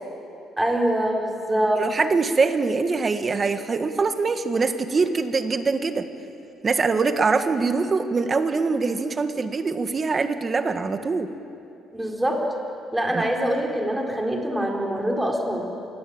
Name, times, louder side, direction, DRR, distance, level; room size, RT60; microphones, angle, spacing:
voice 1, 0.6-1.9 11.9-12.4 12.9-15.7, right 1 dB, 5° right, 0 dB, 4.3 m, -24 dB
voice 2, 1.8-6.1 6.6-11.3 13.1-13.3, right 4 dB, 30° right, 8 dB, 1.7 m, -23 dB
27.5 x 21.0 x 8.9 m, 2.7 s
cardioid pair, 120°, 0 cm